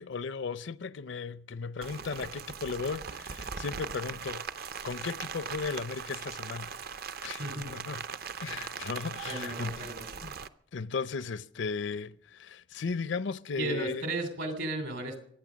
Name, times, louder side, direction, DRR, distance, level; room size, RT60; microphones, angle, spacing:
voice 1, 0.0-4.5 4.8-6.7 7.2-8.0 8.4-9.9 10.2-10.3 10.7-14.1, left 5 dB, 65° left, 0.5 m, -36 dB
Rain, 1.8-10.5, right 6 dB, 45° right, 0.6 m, -40 dB
voice 2, 7.4-7.8 9.2-10.1 13.6-15.2, right 2 dB, 65° right, 3.1 m, -35 dB
23.0 x 9.0 x 6.2 m
head